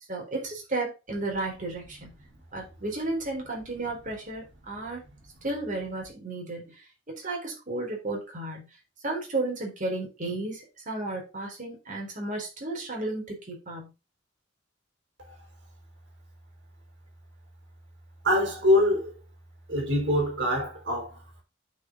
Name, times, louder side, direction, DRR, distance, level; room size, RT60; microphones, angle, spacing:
voice 1, 0.1-2.1 2.5-5.0 5.4-6.7 7.1-8.7 9.0-13.9, right 2 dB, 40° right, 4.1 m, -33 dB
voice 2, 18.2-19.1 19.7-21.4, left 1 dB, 60° right, 4.1 m, -25 dB
9.1 x 5.7 x 3.9 m
head